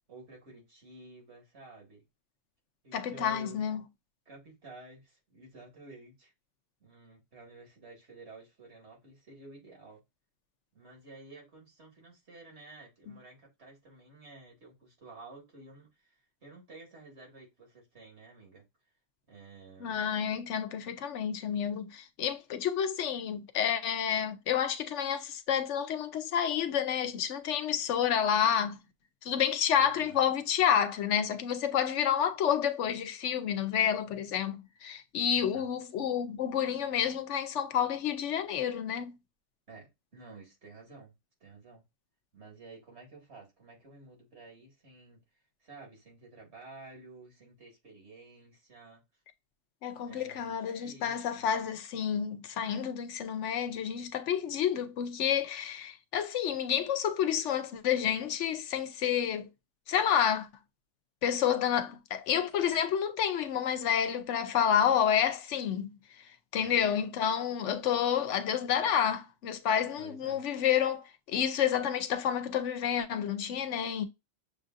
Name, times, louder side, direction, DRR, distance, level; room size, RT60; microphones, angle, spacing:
voice 1, 0.1-2.0 2.8-3.7 4.3-6.3 6.8-10.0 10.7-18.6 19.3-20.0 29.7-30.2 35.3-35.7 39.7-41.1 41.4-41.8 42.3-45.2 45.6-49.0 50.1-51.5 66.6-66.9 70.0-70.4, right 3 dB, 65° right, 2.3 m, -52 dB
voice 2, 2.9-3.8 19.8-28.8 29.2-39.2 49.8-59.5 59.9-60.5 61.2-66.0 66.5-74.0, left 8 dB, 85° left, 1.0 m, -29 dB
6.6 x 2.6 x 2.4 m
omnidirectional pair, 1.2 m